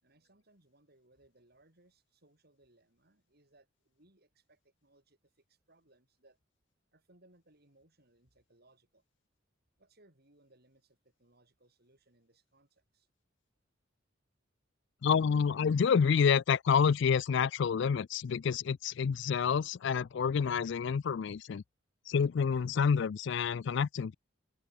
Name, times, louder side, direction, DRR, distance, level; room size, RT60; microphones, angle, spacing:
voice 1, 0.0-6.4 6.9-9.0 9.8-13.1, right 2 dB, 50° right, 7.0 m, -67 dB
voice 2, 15.0-21.6 22.1-24.1, left 6 dB, 60° left, 0.4 m, -28 dB
head